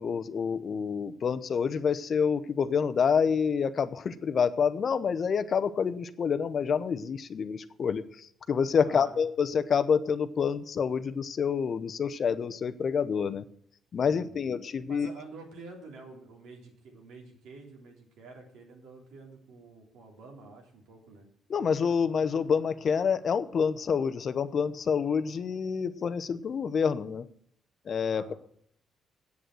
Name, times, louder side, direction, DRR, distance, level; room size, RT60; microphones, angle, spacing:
voice 1, 0.0-13.4 13.9-15.1 21.5-27.2 27.9-28.3, left 6 dB, 50° left, 13 dB, 0.8 m, -28 dB
voice 2, 8.8-9.2 14.0-14.5 14.9-21.3 28.1-28.4, right 3 dB, 85° right, 1 dB, 3.4 m, -48 dB
8.3 x 7.8 x 7.8 m, 0.65 s
cardioid pair, 90°, 0 cm